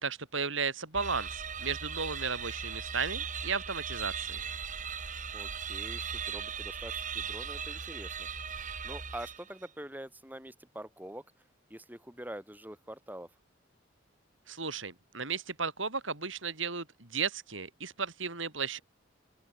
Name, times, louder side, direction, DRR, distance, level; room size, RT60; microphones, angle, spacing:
voice 1, 0.0-4.4 14.5-18.8, right 5 dB, 65° right, 5.4 m, -34 dB
sound 1, 0.9-9.6, right 6 dB, 40° right, 3.4 m, -38 dB
voice 2, 5.3-8.3 8.5-11.2 11.7-13.3, right 1 dB, 10° right, 5.2 m, -45 dB
open air
head